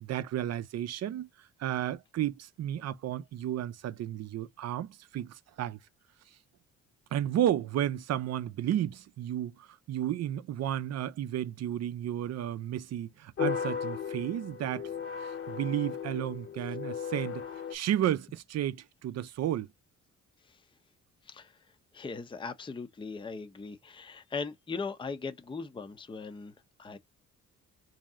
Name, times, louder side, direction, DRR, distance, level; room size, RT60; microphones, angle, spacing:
voice 1, 0.0-1.3 1.6-5.8 7.1-14.9 15.2-17.4 17.7-19.7, right 11 dB, 60° right, 0.6 m, -32 dB
sound 1, 13.4-17.8, left 7 dB, 45° left, 0.9 m, -36 dB
voice 2, 21.2-21.6 21.9-26.5 26.8-27.0, left 4 dB, 15° left, 0.6 m, -39 dB
3.1 x 2.8 x 3.5 m
cardioid pair, 90°, 30 cm